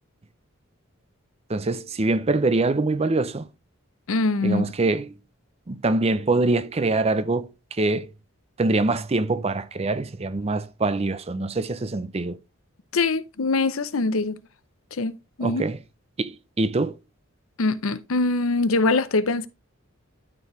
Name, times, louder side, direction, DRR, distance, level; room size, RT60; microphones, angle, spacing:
voice 1, 1.5-3.5 4.4-5.1 5.7-8.1 8.6-12.4 15.4-15.8 16.2-17.0, right 2 dB, 30° right, 0.5 m, -24 dB
voice 2, 4.1-4.6 12.9-14.4 14.9-15.6 17.6-19.5, left 3 dB, 75° left, 0.7 m, -23 dB
12.5 x 4.7 x 3.1 m
head